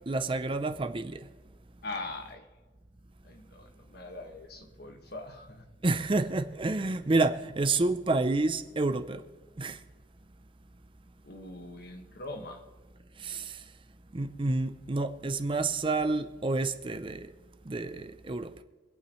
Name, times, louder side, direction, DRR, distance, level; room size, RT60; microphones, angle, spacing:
voice 1, 0.1-1.2 5.8-9.2 9.6-9.8 13.2-13.6 14.1-17.3 17.7-18.5, right 3 dB, 30° right, 0.6 m, -29 dB
voice 2, 1.8-2.4 3.2-5.6 11.2-12.6, left 2 dB, 60° left, 1.7 m, -42 dB
26.5 x 8.8 x 3.2 m
head